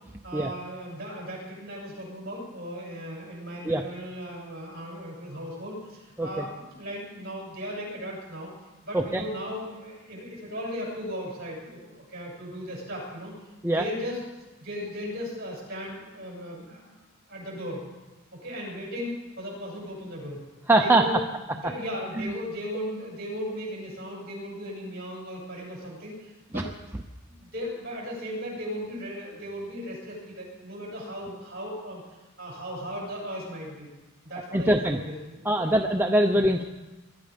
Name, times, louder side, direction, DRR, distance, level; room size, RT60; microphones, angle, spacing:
voice 1, 0.2-8.5 8.8-13.3 13.8-14.2 14.6-16.9 17.3-17.8 18.3-20.4 20.8-21.2 21.5-26.7 27.2-32.0 32.4-33.9 34.2-35.8, equal, 50° right, -2 dB, 7.8 m, -37 dB
voice 2, 20.7-21.0 22.2-22.3 26.5-26.6 34.5-35.0 35.4-36.6, right 1 dB, 10° right, 3 dB, 0.6 m, -22 dB
21.5 x 12.5 x 5.3 m, 1.1 s
head